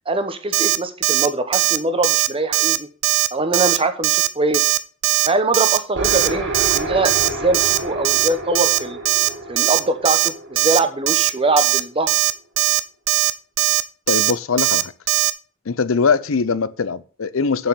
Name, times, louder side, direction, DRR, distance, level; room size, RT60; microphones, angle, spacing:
voice 1, 0.1-2.9 3.3-4.7 5.3-9.0 9.5-12.1, right 2 dB, 25° right, 1.1 m, -22 dB
Alarm, 0.5-0.8 1.0-1.3 1.5-1.8 2.0-2.3 2.5-2.8 3.0-3.3 3.5-3.8 4.0-4.3 4.5-4.8 5.0-5.3 5.5-5.8 6.0-6.3 6.5-6.8 7.0-7.3 7.5-7.8 8.0-8.3 8.6-8.8 9.1-9.3 9.6-9.8 10.1-10.3 10.6-10.8 11.1-11.3 11.6-11.8 12.1-12.3 12.6-12.8 13.1-13.3 13.6-13.8 14.1-14.3 14.6-14.8 15.1-15.3, right 16 dB, 90° right, 0.6 m, -18 dB
sound 1, 6.0-11.6, right 2 dB, 65° right, 2.2 m, -29 dB
voice 2, 14.1-14.9 15.7-17.7, left 5 dB, 90° left, 0.6 m, -21 dB
7.3 x 6.2 x 7.0 m
head